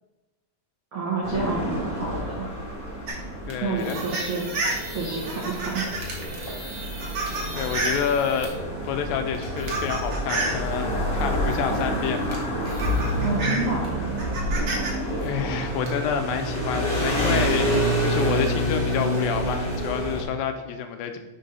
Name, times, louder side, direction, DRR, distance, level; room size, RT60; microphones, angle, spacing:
voice 1, 0.9-2.5 3.6-4.4 4.9-5.8 13.2-14.0, right 3 dB, 80° right, -5 dB, 1.1 m, -29 dB
sound 1, 1.2-20.2, equal, 20° left, 1.7 m, -28 dB
sound 2, 3.1-8.6 9.3-10.6 11.8-11.9 12.3-14.9 15.2-15.9, right 2 dB, 65° right, 1.8 m, -31 dB
voice 2, 3.5-4.0 7.6-8.5 8.8-12.5 15.2-21.2, left 7 dB, 85° left, 7 dB, 2.3 m, -28 dB
5.3 x 4.1 x 5.3 m, 1.1 s
omnidirectional pair, 4.1 m